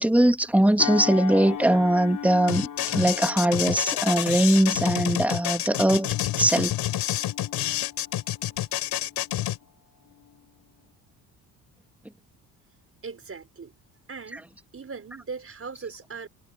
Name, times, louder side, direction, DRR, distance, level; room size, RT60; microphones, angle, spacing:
voice 1, 0.0-6.1 6.4-6.7, right 1 dB, 5° right, 2.6 m, -21 dB
sound 1, 0.8-9.6 10.1-10.3, left 8 dB, 50° left, 5.5 m, -38 dB
sound 2, 2.5-9.6, left 14 dB, 70° left, 5.5 m, -28 dB
voice 2, 13.0-13.7 14.1-14.4 14.7-16.3, right 5 dB, 35° right, 5.7 m, -39 dB
supercardioid pair, 70°, 41 cm